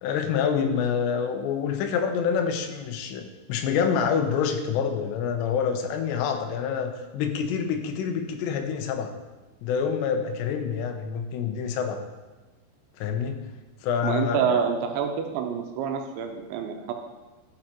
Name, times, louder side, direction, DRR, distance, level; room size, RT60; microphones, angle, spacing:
voice 1, 0.0-9.1 9.6-12.0 13.0-13.4 13.8-14.6, left 7 dB, 80° left, 5 dB, 2.7 m, -27 dB
voice 2, 14.0-16.9, right 7 dB, 80° right, 4 dB, 2.8 m, -27 dB
13.0 x 5.5 x 2.9 m, 1.2 s
omnidirectional pair, 5.5 m